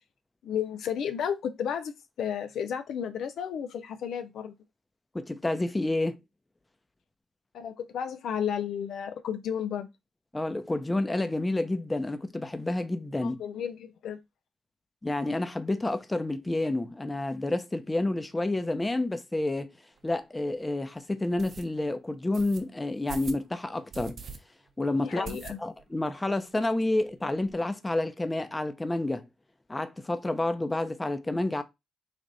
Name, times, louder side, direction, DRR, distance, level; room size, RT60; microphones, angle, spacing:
voice 1, 0.4-4.5 7.5-9.9 13.2-14.2 25.0-25.6, left 8 dB, 75° left, 0.4 m, -33 dB
voice 2, 5.1-6.2 10.3-13.4 15.0-19.7 20.0-24.2 24.8-29.3 29.7-31.6, left 2 dB, 20° left, 0.6 m, -29 dB
sound 1, 20.0-20.1 20.6-20.7 21.4-21.7 22.3-22.6 23.1-23.4 23.9-24.4 24.7-24.8 25.2-25.9 26.2-26.3 26.6-26.7 26.9-27.6, right 5 dB, 60° right, 0.7 m, -42 dB
3.4 x 2.5 x 4.0 m
supercardioid pair, 50°, 0 cm